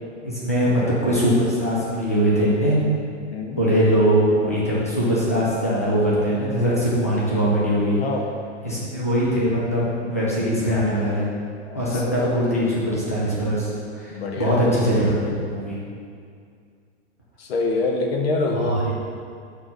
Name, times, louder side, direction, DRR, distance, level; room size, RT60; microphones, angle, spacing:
voice 1, 0.2-2.8 3.6-8.0 8.6-11.2 11.7-13.7 14.0-15.1 15.4-15.8 18.5-18.8, equal, 15° left, -8 dB, 0.3 m, -21 dB
voice 2, 3.3-3.6 8.0-8.3 11.7-12.2 14.1-14.6 17.4-18.9, left 3 dB, 55° left, 2 dB, 0.8 m, -25 dB
5.8 x 3.8 x 5.6 m, 2.3 s
hypercardioid pair, 170°, 36 cm